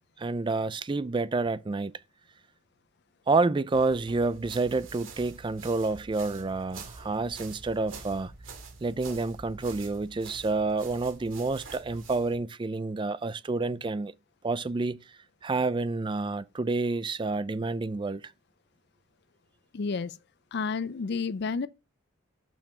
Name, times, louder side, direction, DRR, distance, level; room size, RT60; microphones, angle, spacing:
voice 1, 0.2-1.9 3.3-8.3 8.8-14.1 14.4-15.0 15.4-18.2, right 3 dB, 25° right, 0.4 m, -29 dB
sound 1, 3.7-12.4, right 4 dB, 85° right, 2.3 m, -46 dB
voice 2, 19.7-20.2 20.5-21.7, left 4 dB, 55° left, 0.4 m, -30 dB
6.8 x 6.1 x 5.6 m
head